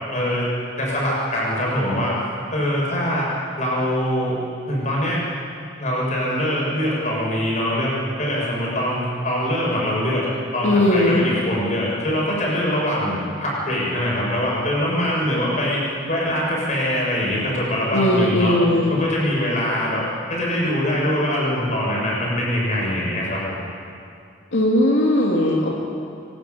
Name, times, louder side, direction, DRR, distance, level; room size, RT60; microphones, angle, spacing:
voice 1, 0.1-0.5 0.8-2.2 2.5-4.4 4.7-5.2 5.8-10.3 10.5-18.6 18.9-20.0 20.3-23.5, equal, 40° left, -5 dB, 7.2 m, -23 dB
voice 2, 10.6-11.3 17.9-19.0 24.5-25.7, left 1 dB, 80° left, -2 dB, 2.4 m, -18 dB
24.5 x 12.0 x 9.6 m, 2.4 s
head